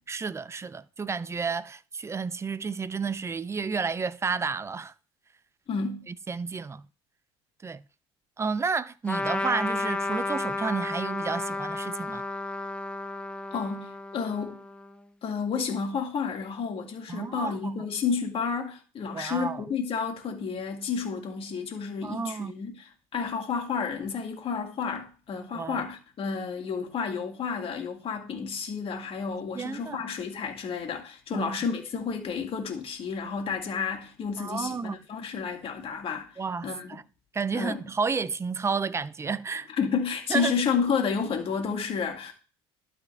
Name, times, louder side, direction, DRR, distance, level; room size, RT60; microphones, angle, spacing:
voice 1, 0.1-4.9 6.1-6.9 7.6-7.8 8.4-12.2 17.1-17.7 19.1-19.6 22.0-22.5 25.5-25.8 29.5-30.0 31.3-31.6 34.4-35.0 36.4-37.0 37.3-39.7 40.3-40.5, right 5 dB, 20° right, 0.5 m, -31 dB
voice 2, 5.7-6.1 13.5-14.6 15.2-22.9 23.1-36.3 36.6-37.0 37.5-37.8 39.8-42.3, left 6 dB, 45° left, 2.4 m, -31 dB
Trumpet, 9.1-14.9, left 2 dB, 10° left, 0.9 m, -32 dB
12.0 x 4.2 x 3.4 m
supercardioid pair, 85°, 13 cm